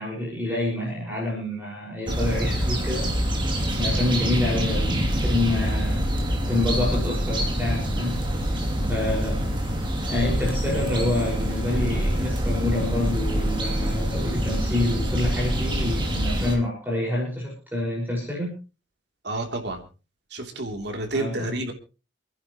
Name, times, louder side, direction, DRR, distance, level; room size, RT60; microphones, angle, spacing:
voice 1, 0.0-3.1 3.8-6.1 6.5-8.1 8.9-9.5 10.1-18.5 21.1-21.6, left 1 dB, 10° right, -4 dB, 5.7 m, -27 dB
sound 1, 2.1-16.6, equal, 25° right, 2.9 m, -25 dB
voice 2, 19.2-19.8 20.3-21.7, right 2 dB, 60° right, 4 dB, 3.3 m, -30 dB
29.0 x 10.5 x 3.1 m, 0.34 s
head